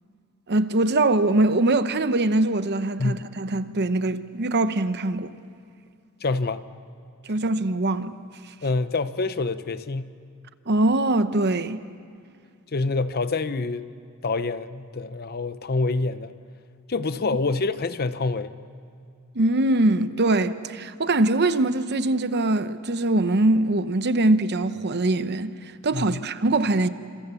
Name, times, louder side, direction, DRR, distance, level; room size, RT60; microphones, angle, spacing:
voice 1, 0.5-5.3 7.3-8.2 10.7-11.8 19.3-25.5 25.8-26.9, right 2 dB, 50° right, 0.9 m, -22 dB
voice 2, 6.2-6.7 8.6-10.1 12.7-13.9 14.2-16.4 16.9-18.6 25.9-26.2, left 3 dB, 45° left, 0.8 m, -26 dB
29.5 x 27.0 x 7.0 m
head